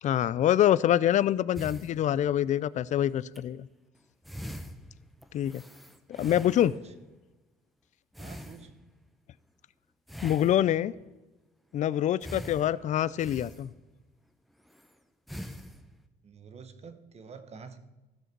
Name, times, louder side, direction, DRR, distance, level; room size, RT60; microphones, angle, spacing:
voice 1, 0.0-3.7 5.3-5.6 6.2-6.7 10.2-10.9 11.7-13.7, left 11 dB, 45° left, 19 dB, 0.4 m, -25 dB
sound 1, 1.6-2.6 3.2-3.4 4.0-4.1 4.2-7.0 8.1-9.1 10.1-11.0 12.2-14.1 14.7-14.9 15.3-16.1, equal, ahead, 0.7 m, -44 dB
voice 2, 6.4-6.9 8.2-8.7 16.2-17.8, right 5 dB, 40° right, 10 dB, 1.0 m, -48 dB
15.0 x 6.4 x 4.5 m, 1.1 s
cardioid pair, 110°, 17 cm